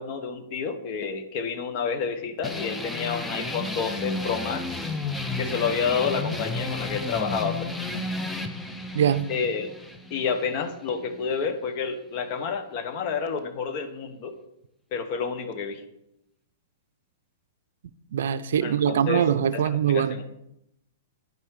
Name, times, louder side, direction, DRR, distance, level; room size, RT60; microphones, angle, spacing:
voice 1, 0.0-4.6 5.4-7.7 9.3-9.7 10.1-14.4 14.9-15.8 18.6-19.2 19.5-19.6 19.9-20.2, left 5 dB, 45° left, 1.1 m, -29 dB
sound 1, 2.4-11.5, left 2 dB, 10° left, 0.7 m, -32 dB
voice 2, 8.9-9.3 18.1-20.2, right 9 dB, 70° right, 0.4 m, -23 dB
9.4 x 5.5 x 4.8 m
hypercardioid pair, 120°, 0 cm